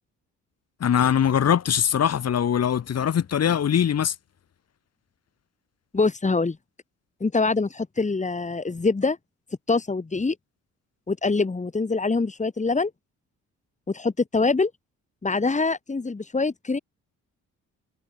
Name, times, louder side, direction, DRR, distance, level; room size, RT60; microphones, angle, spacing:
voice 1, 0.8-4.1, left 8 dB, 55° left, 4.8 m, -22 dB
voice 2, 5.9-6.6 7.2-9.2 9.7-10.4 11.1-12.9 13.9-14.7 15.2-16.8, left 3 dB, 25° left, 5.6 m, -24 dB
cardioid pair, 90°, 30 cm